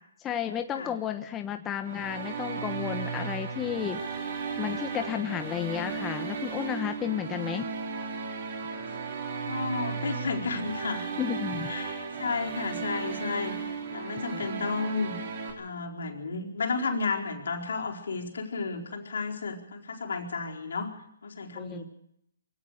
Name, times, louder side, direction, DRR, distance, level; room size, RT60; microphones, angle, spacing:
voice 1, 0.2-4.0 4.6-7.7 11.2-11.7 14.3-14.5 21.5-21.8, left 10 dB, 20° left, 7 dB, 1.2 m, -32 dB
sound 1, 1.8-15.5, right 5 dB, 50° right, 5.3 m, -35 dB
voice 2, 9.4-11.1 11.7-15.2 15.6-20.9 21.2-21.8, left 4 dB, 70° left, 2 dB, 4.5 m, -33 dB
24.0 x 17.0 x 6.7 m, 0.76 s
hypercardioid pair, 140°, 0 cm